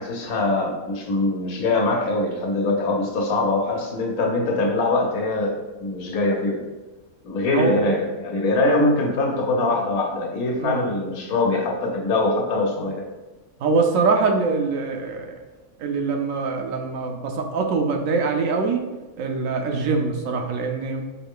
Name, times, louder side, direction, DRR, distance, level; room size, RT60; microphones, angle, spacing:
voice 1, 0.0-6.6 7.2-13.1, left 2 dB, 80° left, 1 dB, 1.3 m, -23 dB
voice 2, 13.6-15.3 15.8-18.9 19.2-21.0, right 4 dB, 70° right, 4 dB, 0.9 m, -23 dB
4.5 x 3.2 x 3.6 m, 1.2 s
omnidirectional pair, 1.5 m